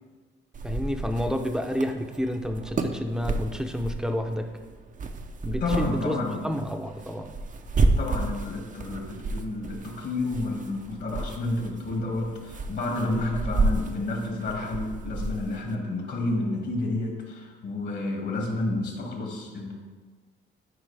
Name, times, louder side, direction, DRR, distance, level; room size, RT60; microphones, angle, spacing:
sound 1, 0.5-15.7, right 3 dB, 40° right, 0.6 m, -31 dB
voice 1, 0.6-4.5 5.4-6.2 6.4-7.3 13.1-13.3, equal, 5° right, 5 dB, 0.7 m, -29 dB
voice 2, 5.6-6.4 8.0-19.7, left 2 dB, 60° left, 0 dB, 2.1 m, -30 dB
10.5 x 4.9 x 3.4 m, 1.4 s
cardioid pair, 90°, 20 cm